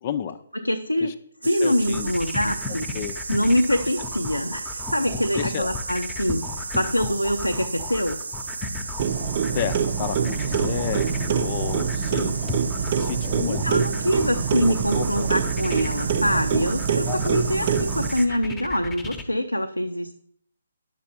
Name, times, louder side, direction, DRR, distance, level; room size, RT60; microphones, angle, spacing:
voice 1, 0.0-0.4 1.0-1.1 1.6-2.1 2.9-3.2 5.3-5.6 9.5-12.4 13.0-13.6 14.6-15.3 17.1-17.2, left 9 dB, 35° left, 13 dB, 0.6 m, -31 dB
voice 2, 0.5-1.1 1.4-2.9 3.3-8.2 13.5-20.1, equal, 90° left, 6 dB, 0.7 m, -24 dB
sound 1, 1.4-18.3, right 4 dB, 65° right, 0.9 m, -35 dB
sound 2, 1.8-19.2, left 4 dB, 10° left, 1.0 m, -35 dB
Clock, 9.0-18.1, right 7 dB, 35° right, 0.7 m, -25 dB
10.0 x 6.9 x 4.5 m, 0.65 s
figure-of-eight pair, 135°, 0 cm